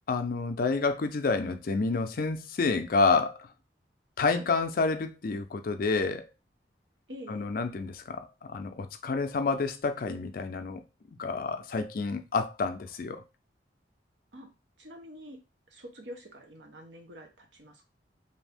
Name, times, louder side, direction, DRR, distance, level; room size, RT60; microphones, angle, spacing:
voice 1, 0.1-3.5 4.2-6.3 7.3-10.8 11.2-13.2, left 4 dB, 50° left, 0.4 m, -29 dB
voice 2, 7.1-7.5 14.3-14.5 14.8-15.4 15.7-17.9, equal, 75° right, 0.8 m, -46 dB
2.7 x 2.5 x 3.4 m
head